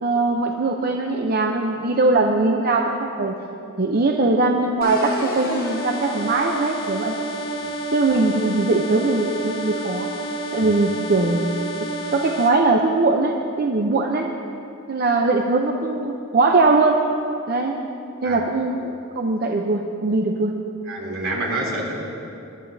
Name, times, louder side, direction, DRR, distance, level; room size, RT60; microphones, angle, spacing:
voice 1, 0.0-3.4 3.8-7.1 7.9-10.1 10.5-11.5 12.1-14.3 14.9-17.0 17.5-17.7 18.2-20.5, right 3 dB, 45° right, 2 dB, 0.6 m, -21 dB
sound 1, 4.8-12.5, right 1 dB, 50° left, 1.7 m, -29 dB
voice 2, 20.9-22.0, right 2 dB, 70° right, -4 dB, 3.2 m, -27 dB
23.0 x 11.5 x 2.7 m, 2.8 s
head